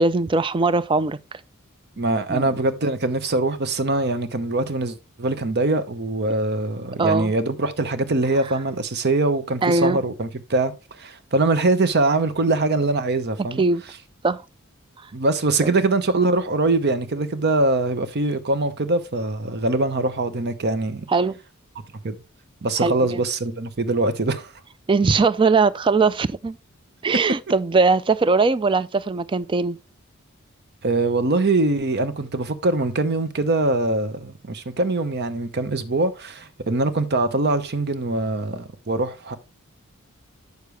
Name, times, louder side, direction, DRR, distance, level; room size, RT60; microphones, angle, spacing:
voice 1, 0.0-1.4 2.3-2.5 7.0-7.3 9.6-10.0 13.4-13.8 14.2-14.4 15.6-15.7 21.1-21.4 22.8-23.2 24.9-26.6 27.0-29.8, right 4 dB, 25° right, 0.4 m, -20 dB
voice 2, 2.0-13.6 15.1-21.1 22.0-22.2 22.6-24.5 30.8-39.4, right 2 dB, 50° right, 0.9 m, -23 dB
8.2 x 6.6 x 3.3 m
head